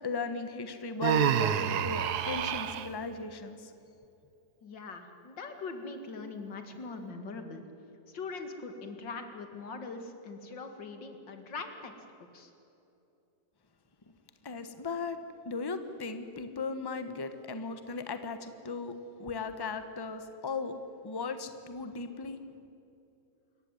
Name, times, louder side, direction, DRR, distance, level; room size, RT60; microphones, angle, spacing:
voice 1, 0.0-3.7 14.4-15.2 15.4-18.9 19.2-20.8 21.0-22.4, left 4 dB, 15° left, 9 dB, 1.1 m, -37 dB
Human voice, 1.0-2.9, right 9 dB, 65° right, 1.3 m, -28 dB
voice 2, 4.6-7.6 8.1-11.9 12.2-12.5, left 4 dB, 90° left, 6 dB, 2.7 m, -42 dB
26.5 x 14.5 x 9.9 m, 2.8 s
omnidirectional pair, 1.9 m